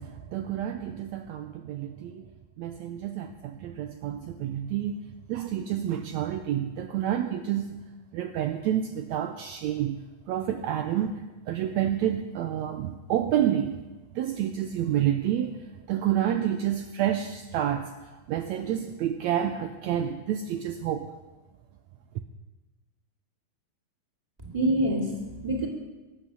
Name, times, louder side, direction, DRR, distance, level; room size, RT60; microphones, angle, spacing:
voice 1, 0.0-2.3 2.6-5.0 5.3-7.8 8.1-13.8 14.1-21.1, right 10 dB, 75° right, 7 dB, 1.9 m, -29 dB
voice 2, 24.4-25.7, right 1 dB, 15° right, -1 dB, 2.5 m, -26 dB
23.0 x 8.6 x 7.0 m, 1.2 s
omnidirectional pair, 3.6 m